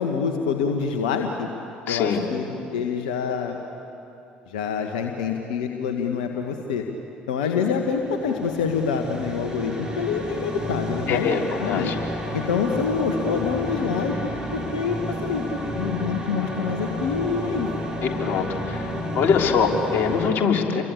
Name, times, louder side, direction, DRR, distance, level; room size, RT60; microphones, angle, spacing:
voice 1, 0.0-1.5 1.9-3.6 4.5-6.8 7.3-11.9 12.3-14.1 14.5-17.7, left 6 dB, 75° left, 4 dB, 1.6 m, -26 dB
voice 2, 1.9-2.2 11.1-12.0 18.0-18.9 19.2-20.8, left 6 dB, 50° left, 2 dB, 3.5 m, -23 dB
sound 1, 7.7-20.3, equal, 15° right, 7.2 m, -31 dB
29.5 x 23.0 x 8.5 m, 2.9 s
figure-of-eight pair, 55°, 5 cm